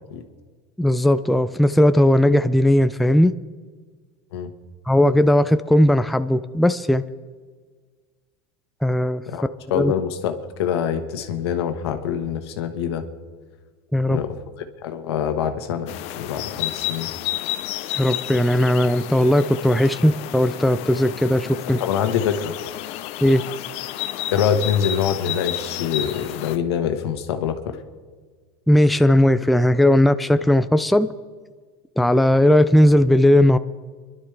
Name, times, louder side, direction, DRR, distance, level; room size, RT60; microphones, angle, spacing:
voice 1, 0.8-3.3 4.9-7.0 8.8-9.2 9.7-9.9 13.9-14.2 17.9-21.8 23.2-23.4 28.7-31.1 32.0-33.6, left 1 dB, ahead, 11 dB, 0.4 m, -17 dB
voice 2, 9.3-13.0 14.1-14.3 14.8-17.1 21.8-22.6 24.3-27.8, left 8 dB, 90° left, 7 dB, 1.4 m, -25 dB
sound 1, 15.9-26.6, left 13 dB, 50° left, 0.7 m, -31 dB
29.5 x 12.0 x 3.3 m, 1.5 s
supercardioid pair, 130°, 13 cm